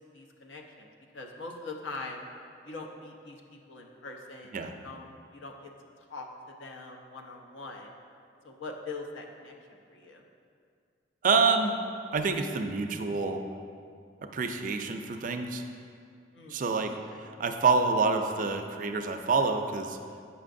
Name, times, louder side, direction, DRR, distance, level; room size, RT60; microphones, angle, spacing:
voice 1, 0.1-2.2 2.6-4.6 4.8-5.1 5.3-5.7 6.0-7.9 8.4-10.2 16.3-16.6 17.1-17.2, left 3 dB, 75° left, 1 dB, 0.7 m, -43 dB
voice 2, 11.2-11.7 12.1-13.4 14.3-15.6 16.5-16.9 17.2-20.0, right 4 dB, 45° right, 6 dB, 0.3 m, -27 dB
8.2 x 5.7 x 2.6 m, 2.3 s
head